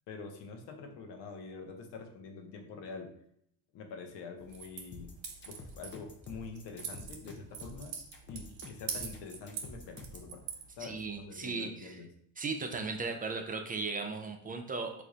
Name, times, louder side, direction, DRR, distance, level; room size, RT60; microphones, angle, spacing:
voice 1, 0.1-3.1 3.7-5.1 5.5-8.0 8.3-10.5 10.8-12.1, left 4 dB, 65° left, 4 dB, 0.9 m, -46 dB
sound 1, 4.4-11.2, right 6 dB, 60° right, 0.9 m, -45 dB
sound 2, 4.9-10.3, left 2 dB, 25° left, 0.7 m, -49 dB
voice 2, 10.8-12.0 12.4-15.0, right 4 dB, 20° right, 4 dB, 0.4 m, -37 dB
3.2 x 2.5 x 3.7 m, 0.69 s
supercardioid pair, 85°, 45 cm